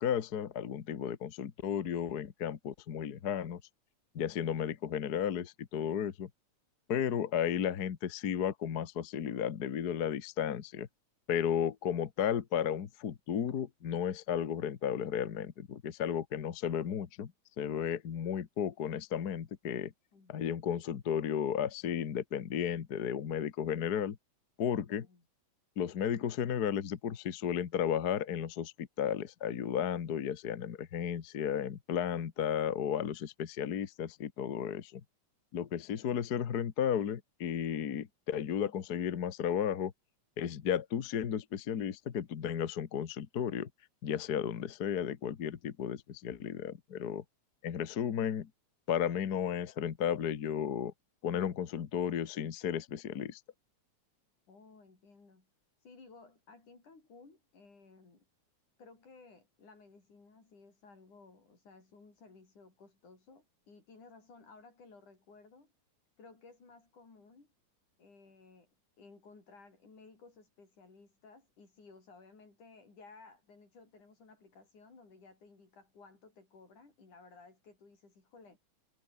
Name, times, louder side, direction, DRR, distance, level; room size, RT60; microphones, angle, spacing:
voice 1, 0.0-3.6 4.1-6.3 6.9-10.9 11.3-17.3 17.6-19.9 20.3-24.2 24.6-25.1 25.8-35.0 35.5-39.9 40.4-43.7 44.0-47.2 47.6-48.5 48.9-50.9 51.2-53.4, left 8 dB, 45° left, 1.3 m, -34 dB
voice 2, 20.1-20.6 24.8-25.3 54.5-55.5 55.8-58.3 58.8-65.7 66.2-67.5 68.0-68.7 69.0-78.6, left 4 dB, 85° left, 8.4 m, -57 dB
omnidirectional pair, 3.4 m